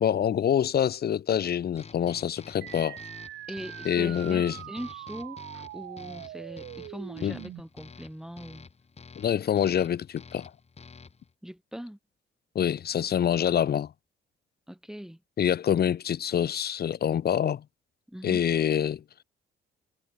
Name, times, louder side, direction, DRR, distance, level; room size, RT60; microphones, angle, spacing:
voice 1, 0.0-3.0 3.8-4.6 7.2-7.4 9.2-10.5 12.5-13.9 15.4-17.6 18.2-19.0, left 9 dB, 50° left, 1.1 m, -26 dB
sound 1, 1.8-11.3, left 5 dB, 30° left, 2.7 m, -49 dB
sound 2, 2.6-7.6, right 15 dB, 85° right, 4.9 m, -42 dB
voice 2, 3.5-8.7 11.4-12.0 14.7-15.2 18.1-18.5, equal, ahead, 4.4 m, -41 dB
cardioid pair, 90°, 20 cm